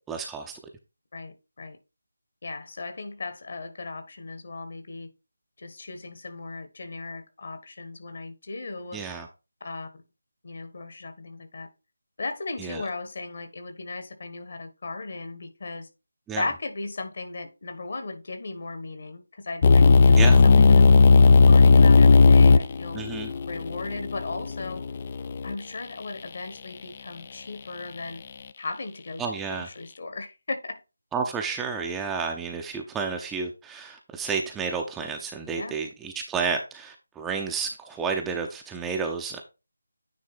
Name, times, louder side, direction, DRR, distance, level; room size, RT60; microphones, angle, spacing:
voice 1, 0.1-0.5 8.9-9.3 12.6-12.8 16.3-16.4 20.2-20.4 22.9-23.3 29.2-29.7 31.1-39.4, right 5 dB, 5° right, 0.7 m, -31 dB
voice 2, 1.1-1.8 2.4-5.1 5.6-9.0 9.6-10.0 10.4-11.7 12.2-15.9 16.3-23.0 23.5-24.9 25.4-28.2 28.6-30.8 35.5-35.8, left 3 dB, 50° left, 1.5 m, -36 dB
sound 1, 19.6-25.5, left 4 dB, 35° left, 0.4 m, -16 dB
9.5 x 3.6 x 4.1 m
figure-of-eight pair, 160°, 0 cm